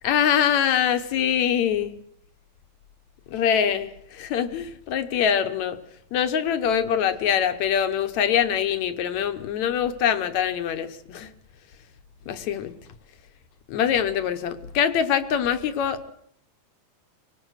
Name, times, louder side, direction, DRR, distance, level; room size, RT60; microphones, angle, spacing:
voice 1, 0.0-1.9 3.3-5.8 6.1-11.3 12.3-12.8 13.7-16.1, left 8 dB, 70° left, 10 dB, 2.2 m, -24 dB
24.5 x 19.5 x 6.4 m, 0.71 s
omnidirectional pair, 3.5 m